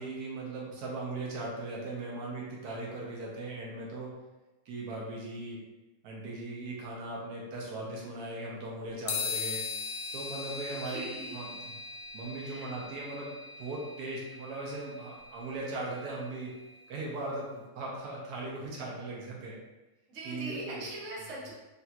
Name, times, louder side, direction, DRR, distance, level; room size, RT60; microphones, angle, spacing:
voice 1, 0.0-4.1 4.7-5.6 6.0-9.6 10.1-11.5 12.1-16.5 16.9-19.6 20.2-20.8, right 2 dB, 85° right, -4 dB, 1.3 m, -38 dB
sound 1, 9.1-16.7, left 4 dB, 75° left, 1.0 m, -40 dB
voice 2, 10.7-11.3 12.4-12.7 20.1-21.5, right 2 dB, 60° right, -4 dB, 1.1 m, -41 dB
3.3 x 2.7 x 2.3 m, 1.1 s
omnidirectional pair, 1.6 m